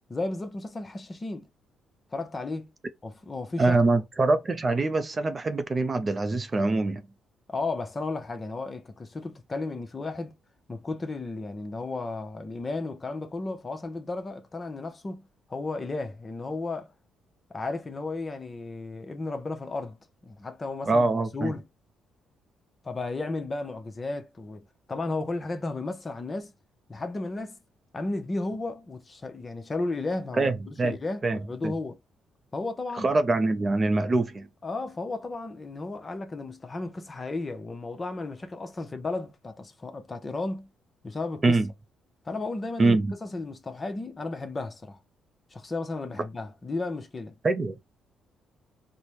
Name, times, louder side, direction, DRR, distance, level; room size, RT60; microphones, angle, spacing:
voice 1, 0.1-1.5 2.1-2.7 3.0-3.8 7.5-10.3 10.7-16.9 17.5-20.0 20.2-21.1 21.3-21.6 22.8-24.6 24.9-26.5 26.9-27.6 27.9-32.0 32.5-33.1 34.6-40.7 41.0-41.6 42.2-45.0 45.5-47.3, left 3 dB, 30° left, 0.7 m, -34 dB
voice 2, 3.6-7.0 20.9-21.5 30.3-31.0 31.2-31.7 33.0-34.5 41.4-41.7 42.8-43.1 47.4-47.8, right 3 dB, 30° right, 0.5 m, -24 dB
4.0 x 2.1 x 3.1 m
cardioid pair, 90°, 0 cm